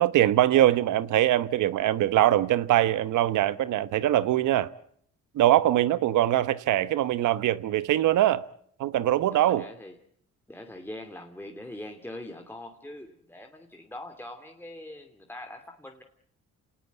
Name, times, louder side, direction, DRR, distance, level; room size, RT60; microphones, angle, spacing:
voice 1, 0.0-4.7 5.3-8.4 8.8-9.6, right 13 dB, 80° right, 1.1 m, -22 dB
voice 2, 9.3-9.9 10.5-16.0, left 1 dB, 5° left, 2.6 m, -42 dB
29.0 x 19.0 x 8.3 m
cardioid pair, 90°, 30 cm